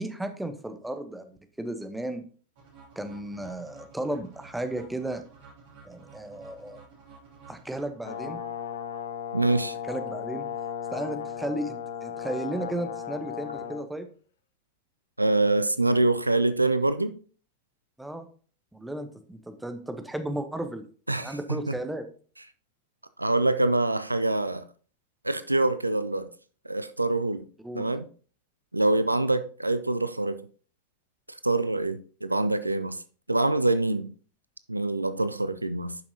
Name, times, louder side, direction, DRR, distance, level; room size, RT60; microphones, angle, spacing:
voice 1, 0.0-2.2 3.0-5.2 5.9-6.8 7.5-8.4 9.9-10.4 10.9-14.1 18.0-18.3 18.7-20.8 21.2-22.1 27.6-27.9, right 1 dB, 5° right, 0.9 m, -34 dB
sound 1, 2.5-8.5, right 5 dB, 50° right, 2.8 m, -52 dB
Brass instrument, 8.0-13.8, left 8 dB, 60° left, 0.7 m, -35 dB
voice 2, 9.3-9.8 15.2-17.1 21.1-21.7 23.2-24.7 25.2-26.3 26.7-27.5 27.7-28.1 28.7-30.5 31.4-33.0 33.3-34.1 34.7-36.0, right 2 dB, 85° right, 0.4 m, -25 dB
10.5 x 5.8 x 2.8 m
figure-of-eight pair, 90°, 0 cm